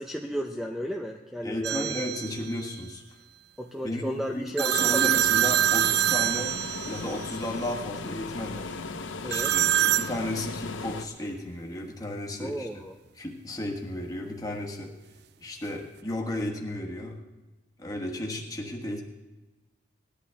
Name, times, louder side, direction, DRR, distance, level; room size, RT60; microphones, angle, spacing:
voice 1, 0.0-1.9 3.6-4.7 4.9-5.1 9.2-9.5 12.4-12.9, equal, ahead, 2 dB, 0.6 m, -33 dB
voice 2, 1.4-3.0 3.8-6.6 6.9-8.7 9.3-12.7 13.2-15.0 15.4-17.2 17.8-19.0, left 1 dB, 20° left, 1 dB, 1.5 m, -34 dB
sound 1, 1.6-2.4 4.6-7.2 9.3-10.1, right 12 dB, 55° right, 0.4 m, -24 dB
sound 2, 4.7-11.0, left 3 dB, 70° left, 0.7 m, -37 dB
19.0 x 11.5 x 3.5 m, 1.1 s
head